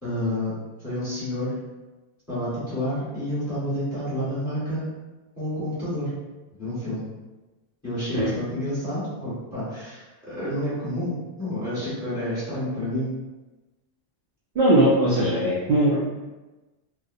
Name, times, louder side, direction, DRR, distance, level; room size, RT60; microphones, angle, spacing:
voice 1, 0.0-0.5 0.8-1.5 2.3-4.8 5.4-6.1 6.6-7.0 7.8-13.1, left 1 dB, 15° left, -12 dB, 1.0 m, -29 dB
voice 2, 14.5-16.0, right 1 dB, 65° right, -7 dB, 0.7 m, -20 dB
2.3 x 2.1 x 2.5 m, 1.1 s
omnidirectional pair, 1.1 m